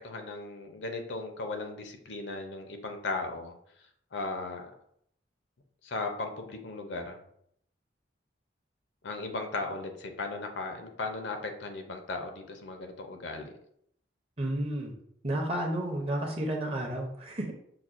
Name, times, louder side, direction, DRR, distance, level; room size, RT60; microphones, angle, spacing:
voice 1, 0.0-3.5 4.1-4.7 5.8-7.2 9.0-13.5, left 3 dB, 70° left, 5 dB, 0.5 m, -36 dB
voice 2, 14.4-14.9 15.2-17.5, right 1 dB, 30° right, 1 dB, 0.6 m, -31 dB
5.7 x 2.1 x 2.5 m, 0.70 s
head